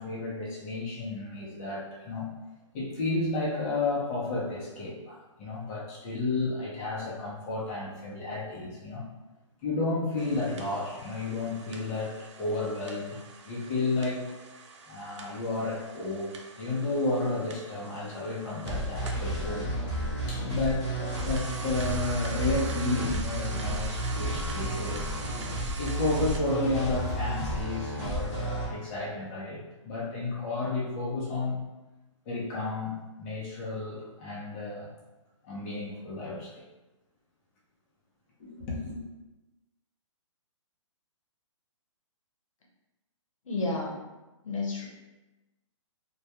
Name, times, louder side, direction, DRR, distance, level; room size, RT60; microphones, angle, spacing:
voice 1, 0.0-2.3 2.7-9.0 9.6-13.2 13.4-14.3 14.9-19.7 20.3-25.1 25.8-31.7 32.3-34.9 35.4-36.6 38.4-39.0, left 2 dB, 25° left, -5 dB, 0.5 m, -32 dB
sound 1, 10.2-19.3 20.8-26.4, right 4 dB, 65° right, 0.4 m, -44 dB
sound 2, 18.6-28.6, right 1 dB, 10° right, 0.9 m, -32 dB
voice 2, 43.4-44.0 44.4-44.9, left 3 dB, 90° left, -1 dB, 0.7 m, -31 dB
2.2 x 2.2 x 2.8 m, 1.1 s
hypercardioid pair, 155°, 16 cm